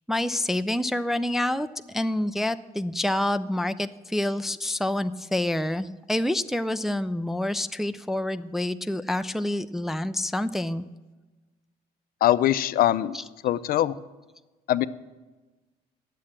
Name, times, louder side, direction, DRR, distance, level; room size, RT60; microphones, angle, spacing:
voice 1, 0.1-10.8 13.1-13.3, left 1 dB, ahead, 10 dB, 0.3 m, -27 dB
voice 2, 12.2-13.2 13.4-13.9 14.7-14.9, left 13 dB, 60° left, 14 dB, 0.5 m, -22 dB
9.4 x 7.6 x 8.7 m, 1.2 s
cardioid pair, 110°, 17 cm